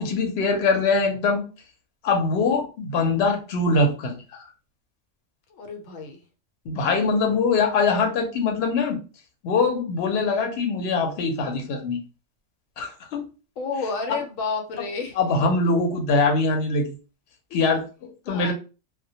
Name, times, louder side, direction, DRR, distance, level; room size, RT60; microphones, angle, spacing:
voice 1, 0.0-1.4 2.0-4.4 6.7-9.0 9.4-12.0 12.8-13.3 15.2-16.9 17.5-18.5, left 3 dB, 60° left, 2 dB, 0.8 m, -23 dB
voice 2, 5.5-6.2 13.6-15.7 17.5-17.7 18.2-18.5, left 4 dB, 90° left, 3 dB, 1.0 m, -31 dB
2.1 x 2.1 x 2.7 m, 0.33 s
omnidirectional pair, 1.3 m